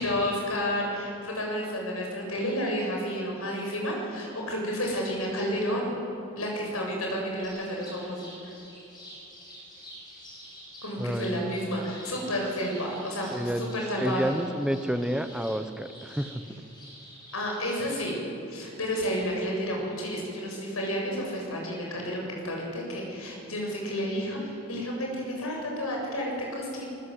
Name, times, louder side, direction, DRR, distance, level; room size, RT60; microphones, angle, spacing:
voice 1, 0.0-5.9 6.3-8.5 10.8-14.3 17.3-18.2 18.5-26.9, equal, 90° left, -1 dB, 7.7 m, -31 dB
sound 1, 7.4-17.9, equal, 20° left, 7.0 m, -48 dB
voice 2, 11.0-11.5 13.3-16.4, equal, 5° right, 8 dB, 1.0 m, -30 dB
26.0 x 20.5 x 8.0 m, 3.0 s
head